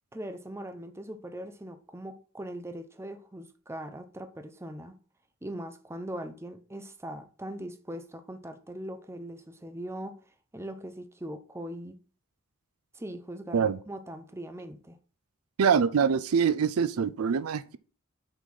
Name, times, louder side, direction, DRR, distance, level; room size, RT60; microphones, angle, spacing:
voice 1, 0.1-5.0 5.4-10.2 10.5-12.0 12.9-15.0, right 1 dB, 10° right, 0.6 m, -40 dB
voice 2, 15.6-17.8, right 6 dB, 75° right, 0.4 m, -24 dB
6.0 x 4.1 x 5.6 m
head